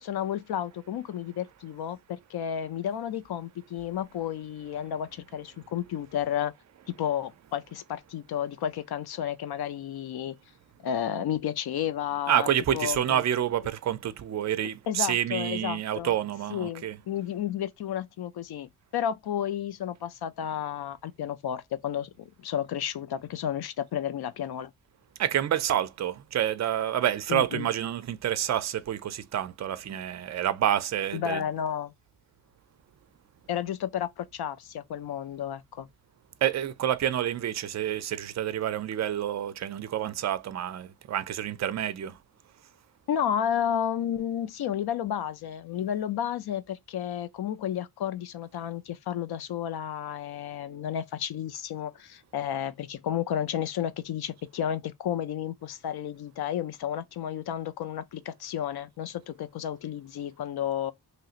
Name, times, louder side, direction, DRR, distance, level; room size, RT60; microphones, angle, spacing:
voice 1, 0.0-6.5 6.9-10.4 10.8-13.2 14.9-16.1 16.5-24.7 27.3-27.7 31.1-31.9 33.5-35.9 43.1-60.9, left 10 dB, 70° left, 0.5 m, -32 dB
voice 2, 12.3-17.0 25.2-31.4 36.4-42.1, right 10 dB, 45° right, 0.4 m, -28 dB
3.1 x 2.8 x 2.4 m
cardioid pair, 95°, 40 cm